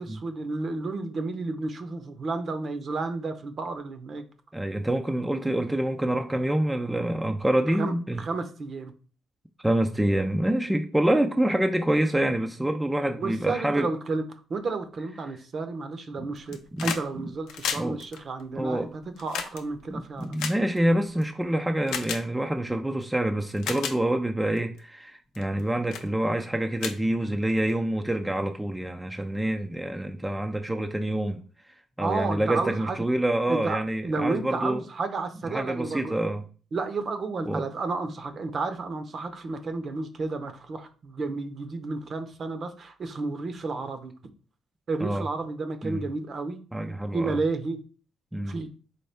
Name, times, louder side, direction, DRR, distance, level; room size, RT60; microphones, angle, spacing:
voice 1, 0.0-4.2 7.8-8.9 13.2-20.4 32.0-33.0 33.5-36.2 36.7-44.1 44.9-46.6 47.1-47.8 48.4-48.7, right 3 dB, 50° right, 0.7 m, -32 dB
voice 2, 4.5-8.2 9.6-13.9 16.2-16.3 16.7-17.3 17.8-18.0 18.6-18.9 19.9-31.4 32.0-34.8 35.5-36.4 37.5-37.7 45.0-45.2 45.8-46.0 46.7-47.4 48.3-48.5, right 1 dB, 10° right, 0.4 m, -26 dB
sound 1, 16.4-17.1 17.3-21.2 21.9-22.2 23.0-23.1 23.5-24.0 24.6-24.8 25.3-25.6 25.9-26.1 26.4-26.5 26.8-27.7 28.9-29.0, left 7 dB, 85° left, 0.5 m, -34 dB
4.2 x 3.4 x 3.4 m
cardioid pair, 90°, 0 cm